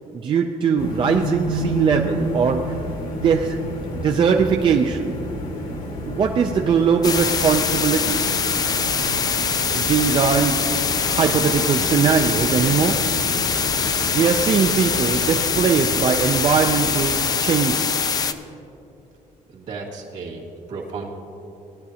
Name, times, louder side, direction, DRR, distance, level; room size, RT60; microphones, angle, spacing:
voice 1, 0.1-3.7 4.0-5.2 6.0-8.2 9.7-13.3 14.1-18.1, right 6 dB, 35° right, 3 dB, 0.4 m, -21 dB
sound 1, 0.8-17.8, equal, 75° left, 1.8 m, -31 dB
sound 2, 7.0-18.3, left 6 dB, 25° left, 0.4 m, -23 dB
voice 2, 19.5-21.1, right 4 dB, 65° right, -2 dB, 2.2 m, -34 dB
18.0 x 10.5 x 2.8 m, 2.8 s
cardioid pair, 160°, 14 cm